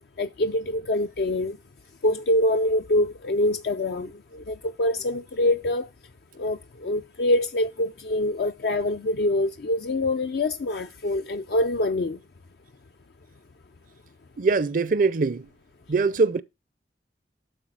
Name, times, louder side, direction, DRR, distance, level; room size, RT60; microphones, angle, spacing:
voice 1, 0.2-1.6 2.0-5.9 6.4-12.2, left 1 dB, 60° left, 0.5 m, -25 dB
voice 2, 14.4-15.5 15.9-16.4, right 4 dB, 45° right, 0.5 m, -22 dB
8.0 x 4.9 x 6.0 m
head